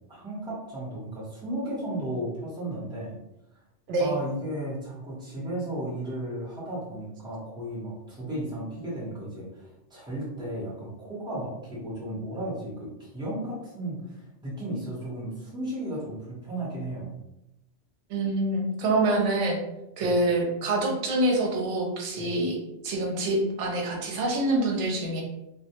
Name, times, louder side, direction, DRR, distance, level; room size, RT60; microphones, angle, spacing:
voice 1, 0.1-3.2 4.0-17.2 20.0-20.1 22.2-22.3, right 1 dB, 5° right, -8 dB, 0.8 m, -34 dB
voice 2, 18.1-19.6 20.0-22.6 22.8-25.2, right 2 dB, 85° right, 0 dB, 0.9 m, -26 dB
2.2 x 2.1 x 2.8 m, 0.88 s
omnidirectional pair, 1.2 m